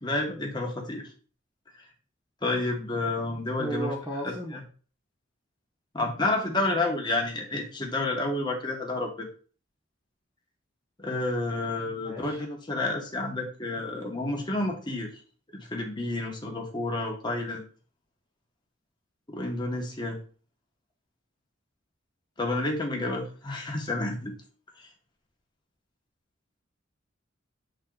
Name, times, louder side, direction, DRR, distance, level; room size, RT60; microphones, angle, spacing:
voice 1, 0.0-1.1 1.8-1.9 2.4-3.9 4.2-4.6 5.9-9.3 11.0-15.2 15.5-17.6 19.3-20.2 22.4-24.4 24.8-24.9, left 2 dB, 20° left, 0 dB, 1.5 m, -30 dB
voice 2, 3.6-4.6 11.9-12.4, right 1 dB, 15° right, -4 dB, 1.2 m, -35 dB
7.3 x 4.1 x 3.9 m, 0.40 s
head